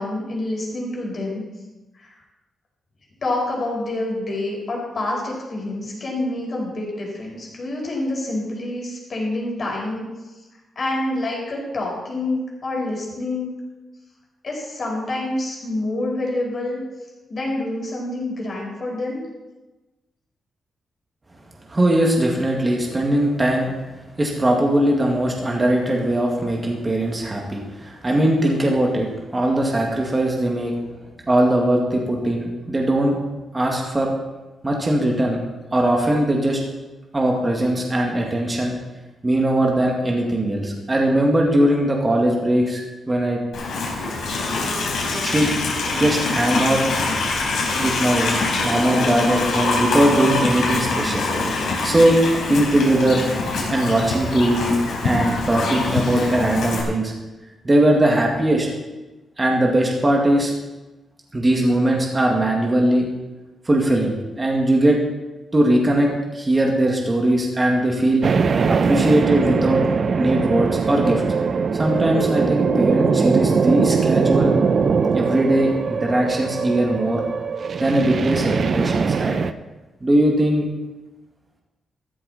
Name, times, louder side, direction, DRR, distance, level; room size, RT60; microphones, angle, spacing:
voice 1, 0.0-1.4 1.9-2.2 3.2-10.0 10.7-13.6 14.4-16.8 17.3-19.2, left 2 dB, 45° left, -2 dB, 4.9 m, -27 dB
voice 2, 21.7-23.7 24.2-30.7 31.3-33.2 33.5-34.1 34.6-35.4 35.7-36.6 37.1-38.7 39.2-42.8 43.1-43.4 45.2-45.5 45.9-46.8 47.8-48.3 48.6-51.3 51.8-52.2 52.5-53.2 53.7-54.8 55.0-57.1 57.6-58.7 59.4-60.5 61.3-63.1 63.7-65.0 65.5-68.2 68.7-69.8 70.2-71.2 71.7-74.6 75.1-77.2 77.8-79.4 80.0-80.7, right 1 dB, 20° right, -1 dB, 2.0 m, -20 dB
Livestock farm animals working animals, 43.5-56.8, left 3 dB, 85° left, 4.0 m, -24 dB
sound 1, 68.2-79.5, right 5 dB, 50° right, 0.6 m, -21 dB
13.5 x 12.5 x 4.2 m, 1.1 s
cardioid pair, 120°, 0 cm